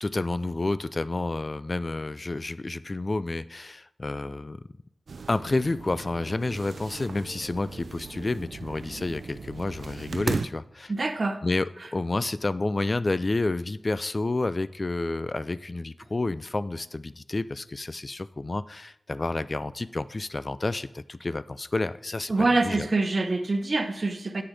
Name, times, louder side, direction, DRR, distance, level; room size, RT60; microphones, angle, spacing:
voice 1, 0.0-4.6 5.3-10.9 11.4-22.3 22.6-22.9, left 2 dB, 35° left, 15 dB, 0.3 m, -30 dB
sound 1, 5.1-10.5, right 4 dB, 80° right, 0.4 m, -37 dB
voice 2, 10.9-11.4 22.3-24.4, right 3 dB, 50° right, 8 dB, 0.9 m, -25 dB
9.9 x 7.8 x 3.3 m, 0.78 s
wide cardioid pair, 80°, 0 cm